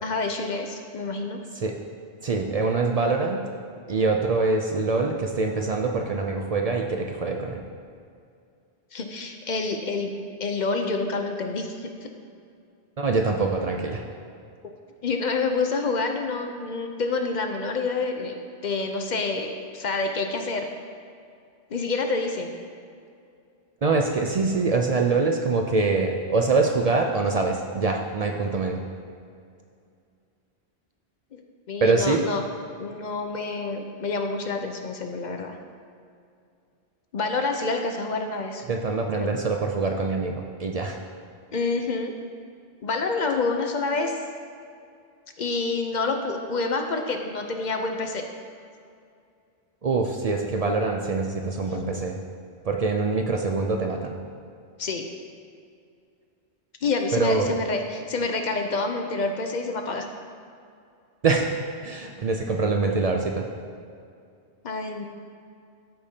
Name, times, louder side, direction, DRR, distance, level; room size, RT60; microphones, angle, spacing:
voice 1, 0.0-1.4 8.9-10.1 10.4-11.9 15.0-18.4 18.6-20.7 21.7-22.5 31.3-31.4 31.7-32.5 32.8-35.6 37.1-38.6 39.2-39.3 41.5-42.1 42.8-44.2 45.4-48.3 54.8-55.1 56.8-60.1 64.6-65.1, left 3 dB, 50° left, 4 dB, 0.6 m, -28 dB
voice 2, 2.2-3.4 3.9-7.6 13.0-14.0 23.8-28.8 31.8-32.2 38.7-41.0 49.8-52.2 52.6-54.2 57.1-57.5 61.2-61.5 61.8-63.5, right 3 dB, 50° right, 2 dB, 0.4 m, -24 dB
13.5 x 5.1 x 2.8 m, 2.4 s
omnidirectional pair, 1.1 m